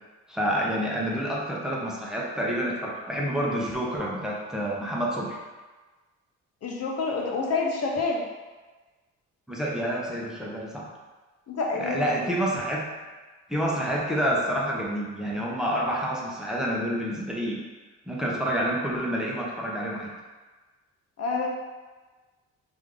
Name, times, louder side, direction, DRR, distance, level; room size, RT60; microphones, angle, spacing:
voice 1, 0.3-5.4 9.5-10.9 11.7-12.8 13.5-17.6 18.1-20.1, equal, ahead, -4 dB, 0.7 m, -28 dB
voice 2, 6.6-8.2 11.5-12.0 21.2-21.5, left 4 dB, 55° left, 0 dB, 0.6 m, -27 dB
3.2 x 2.6 x 3.7 m, 1.3 s
cardioid pair, 90°, 30 cm